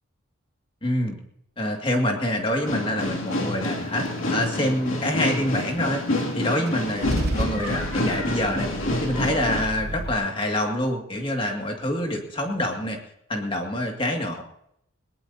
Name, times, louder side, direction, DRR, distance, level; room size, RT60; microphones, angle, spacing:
voice 1, 0.8-1.2 1.6-6.0 6.3-13.0 13.3-14.4, left 1 dB, 25° left, 2 dB, 2.2 m, -26 dB
sound 1, 2.6-9.6, left 1 dB, 75° left, 2.6 m, -28 dB
Car / Engine starting / Idling, 6.7-10.1, right 1 dB, 50° right, 1.1 m, -31 dB
21.0 x 19.0 x 2.8 m, 0.74 s
head